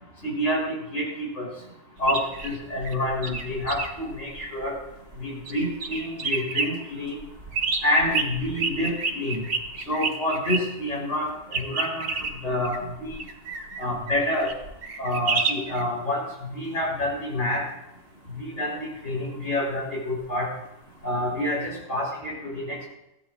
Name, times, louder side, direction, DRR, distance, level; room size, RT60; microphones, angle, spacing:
voice 1, 0.2-0.6 0.9-1.5 2.0-4.7 5.2-7.2 7.8-9.4 9.9-12.1 12.4-13.2 13.8-14.5 15.0-17.6 18.4-20.5 21.0-22.9, left 1 dB, 75° left, -3 dB, 6.5 m, -28 dB
sound 1, 2.0-5.2 5.5-6.7 7.2-10.6 11.5-15.8 21.6-21.7, right 4 dB, 85° right, 1.7 m, -30 dB
22.0 x 15.0 x 2.5 m, 0.87 s
omnidirectional pair, 1.3 m